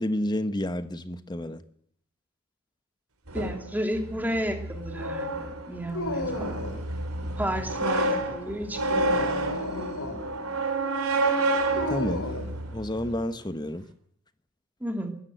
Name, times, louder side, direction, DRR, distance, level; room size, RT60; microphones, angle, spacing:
voice 1, 0.0-1.6 11.9-12.3 12.7-13.8, left 1 dB, 20° left, 12 dB, 1.1 m, -30 dB
voice 2, 3.3-6.6 7.4-9.3 14.8-15.1, equal, 10° right, 4 dB, 2.8 m, -32 dB
sound 1, 3.3-13.2, right 2 dB, 85° right, 3.7 m, -29 dB
Dog, 5.9-6.9 8.8-10.3 11.8-12.5, left 1 dB, 75° left, 4.2 m, -33 dB
23.0 x 14.0 x 8.0 m, 0.65 s
head